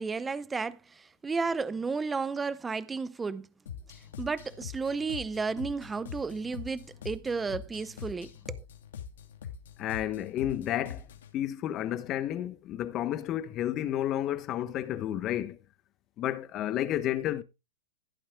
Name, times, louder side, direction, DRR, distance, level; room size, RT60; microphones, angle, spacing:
voice 1, 0.0-3.5 4.2-8.6, right 4 dB, 10° right, 0.6 m, -33 dB
sound 1, 3.7-11.3, left 7 dB, 70° left, 2.8 m, -44 dB
voice 2, 9.8-11.0 11.3-15.6 16.2-17.4, left 12 dB, 30° left, 1.1 m, -31 dB
15.5 x 8.6 x 2.3 m
hypercardioid pair, 135°, 0 cm